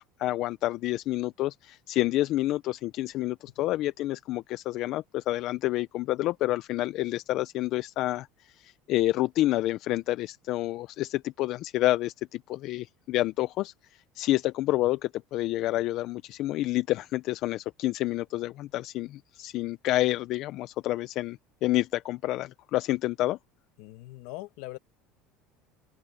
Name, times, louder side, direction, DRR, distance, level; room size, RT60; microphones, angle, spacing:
voice 1, 0.0-23.4, left 16 dB, 50° left, 0.5 m, -29 dB
voice 2, 23.8-24.8, left 20 dB, 70° left, 1.3 m, -41 dB
open air
cardioid pair, 155°, 0 cm